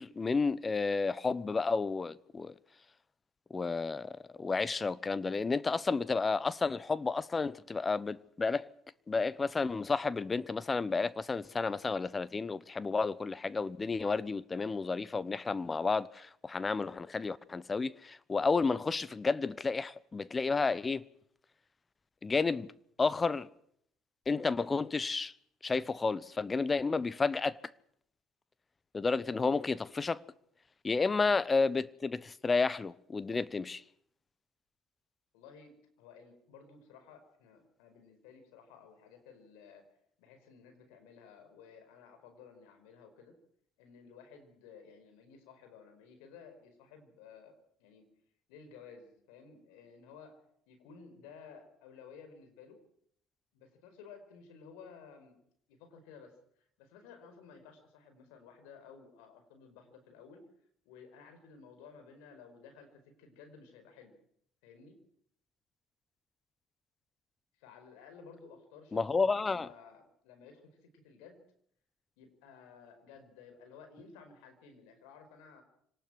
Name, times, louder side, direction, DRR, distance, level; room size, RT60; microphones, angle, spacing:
voice 1, 0.0-2.5 3.5-8.7 9.1-21.0 22.2-22.7 23.0-23.5 24.3-25.3 25.6-27.6 28.9-30.2 30.8-33.8 68.9-69.7, left 4 dB, 25° left, 1.0 m, -31 dB
voice 2, 35.3-39.9 40.2-43.4 43.8-48.0 48.5-52.8 53.5-55.4 55.7-60.5 60.8-64.1 64.6-65.0 67.6-69.1 69.3-71.4 72.2-75.6, left 6 dB, 80° left, 5.0 m, -55 dB
25.5 x 19.0 x 6.3 m
hypercardioid pair, 65°, 0 cm